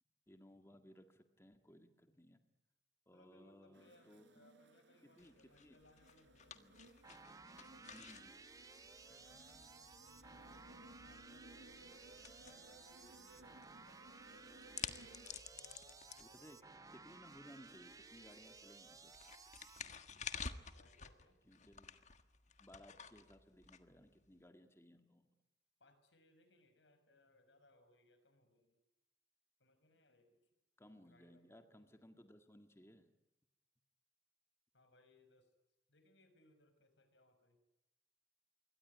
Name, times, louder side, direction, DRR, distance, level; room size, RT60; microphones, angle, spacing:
voice 1, 0.3-2.4 3.1-4.3 5.2-5.8 6.5-6.8 7.6-8.3 16.2-16.6 16.9-19.1 21.5-22.0 22.6-25.3 30.8-33.1, equal, 15° left, 6 dB, 1.8 m, -61 dB
voice 2, 3.1-6.6 9.1-14.5 15.3-17.0 20.7-21.4 25.8-28.8 29.6-30.4 31.0-31.6 34.7-35.5 35.9-37.6, left 1 dB, 85° left, 9 dB, 5.9 m, -69 dB
sound 1, 3.7-15.3, right 1 dB, 80° right, 4.4 m, -63 dB
sound 2, 5.2-24.4, left 6 dB, 40° left, 1.5 m, -53 dB
sound 3, 7.0-19.8, right 4 dB, 20° right, 0.9 m, -58 dB
26.5 x 23.0 x 9.8 m, 0.93 s
head